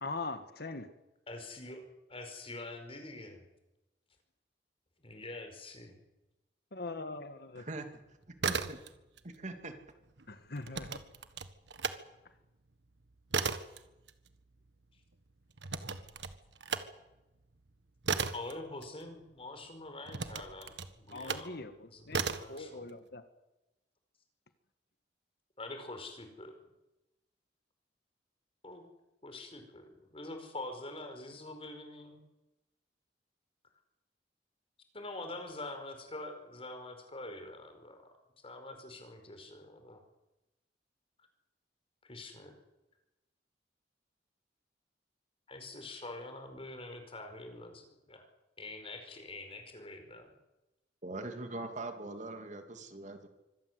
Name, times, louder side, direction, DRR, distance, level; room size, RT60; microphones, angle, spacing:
voice 1, 0.0-0.9 6.7-7.7 10.3-11.0 21.1-23.2, left 3 dB, 60° left, 9 dB, 1.7 m, -42 dB
voice 2, 1.3-3.4 5.0-5.9 18.3-21.6 21.9-22.9 25.6-26.5 28.6-28.9 29.2-32.2 34.9-38.2 38.4-40.0 42.0-42.6 45.5-48.3 48.6-50.3, left 2 dB, 35° left, 6 dB, 4.9 m, -45 dB
voice 3, 7.6-8.0 8.4-8.8 9.2-9.7 51.0-53.3, right 2 dB, 45° right, 6 dB, 2.7 m, -42 dB
sound 1, 8.2-9.2 9.5-12.0 12.4-19.4 20.1-21.5 22.1-22.6, right 5 dB, 85° right, 1.6 m, -36 dB
25.0 x 17.5 x 8.2 m, 0.98 s
head